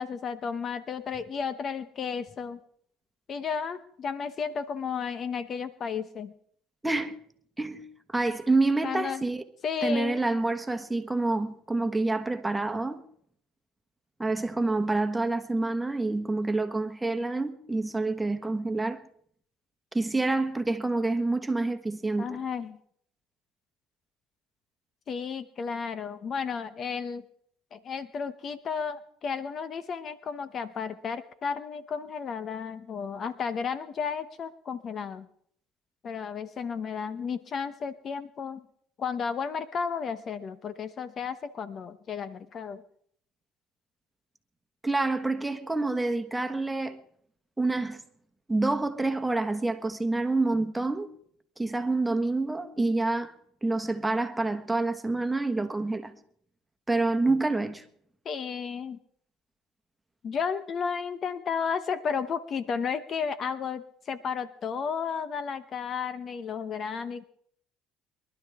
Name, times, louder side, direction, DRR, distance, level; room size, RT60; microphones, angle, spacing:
voice 1, 0.0-2.6 3.3-6.3 8.8-9.2 9.6-10.2 22.2-22.8 25.1-27.2 27.7-35.3 36.0-38.6 39.0-42.8 58.2-59.0 60.2-67.2, left 6 dB, 45° left, 0.9 m, -33 dB
voice 2, 6.8-7.2 7.6-9.4 9.8-13.0 14.2-19.0 19.9-22.4 44.8-47.0 47.6-48.0 48.5-51.1 51.6-53.3 53.6-56.2 56.9-57.8, right 2 dB, 10° right, 1.5 m, -27 dB
23.0 x 12.0 x 3.6 m
supercardioid pair, 85°, 0 cm